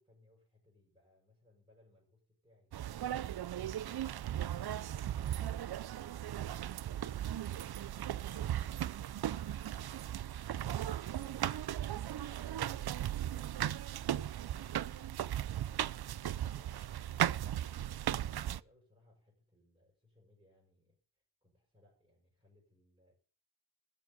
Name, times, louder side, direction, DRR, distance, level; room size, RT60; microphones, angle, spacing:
voice 1, 0.0-2.7 3.0-7.7 8.1-9.0 9.4-12.4 12.7-15.0 15.4-17.1 17.7-23.1, left 1 dB, 15° right, -3 dB, 6.8 m, -67 dB
sound 1, 2.7-18.6, right 11 dB, 65° right, 0.5 m, -37 dB
13.5 x 7.5 x 8.3 m, 0.43 s
wide cardioid pair, 100°, 41 cm